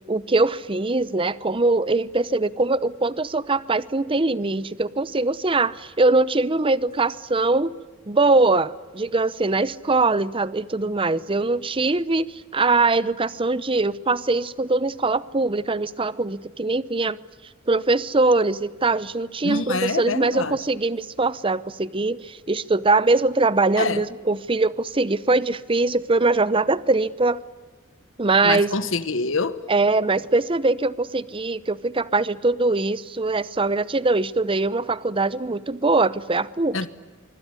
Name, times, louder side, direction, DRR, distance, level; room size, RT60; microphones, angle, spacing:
voice 1, 0.1-7.7 8.1-17.2 17.7-27.4 28.2-28.7 29.7-36.9, right 3 dB, 25° right, 0.8 m, -22 dB
voice 2, 19.4-20.6 23.8-24.0 28.4-29.6 36.7-36.9, left 3 dB, 65° left, 1.3 m, -25 dB
25.5 x 24.5 x 9.5 m
head